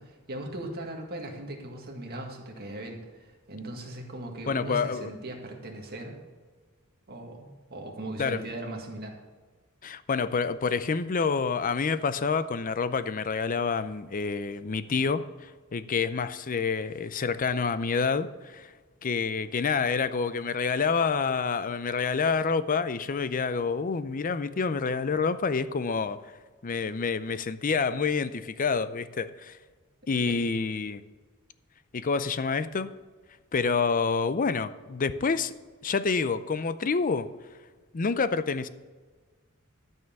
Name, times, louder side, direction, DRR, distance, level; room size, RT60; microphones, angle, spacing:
voice 1, 0.0-6.2 7.1-9.2 30.0-30.4, right 1 dB, 50° right, 1 dB, 1.9 m, -39 dB
voice 2, 4.5-5.1 8.2-8.4 9.8-18.7 19.0-26.2 26.6-29.6 30.1-31.0 31.9-32.9 33.5-35.5 35.8-37.3 37.9-38.7, left 5 dB, 40° left, 14 dB, 0.5 m, -28 dB
13.0 x 5.6 x 6.9 m, 1.4 s
head